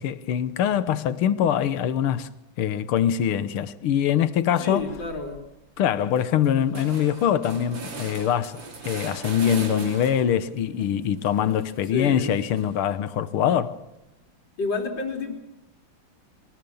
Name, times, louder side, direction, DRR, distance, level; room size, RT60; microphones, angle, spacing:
voice 1, 0.0-2.3 2.6-4.9 5.8-13.8, left 9 dB, 80° left, 1.9 m, -23 dB
voice 2, 4.6-5.4 11.9-12.3 14.6-15.4, left 3 dB, 55° left, 4.1 m, -30 dB
sound 1, 4.8-5.3 5.7-5.8 6.0-10.4 10.8-12.9, right 4 dB, 60° right, 3.4 m, -40 dB
24.0 x 19.5 x 7.1 m
omnidirectional pair, 2.4 m